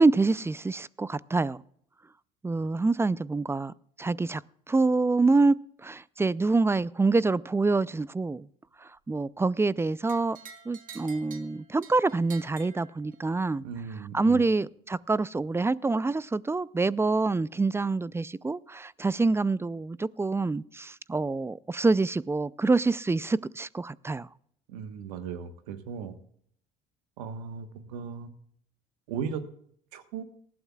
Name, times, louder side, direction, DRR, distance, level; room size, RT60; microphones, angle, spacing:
voice 1, 0.0-1.6 2.4-3.7 4.0-4.4 4.7-5.6 5.8-8.4 9.1-10.4 10.7-13.6 14.1-24.3, right 3 dB, 15° right, 21 dB, 0.4 m, -26 dB
sound 1, 10.1-13.5, right 6 dB, 45° right, 1.9 m, -49 dB
voice 2, 13.6-14.4 24.7-26.1 27.2-28.3 29.1-29.4 29.9-30.2, right 6 dB, 85° right, 10 dB, 1.3 m, -37 dB
19.0 x 12.0 x 2.3 m, 0.65 s
hypercardioid pair, 70°, 19 cm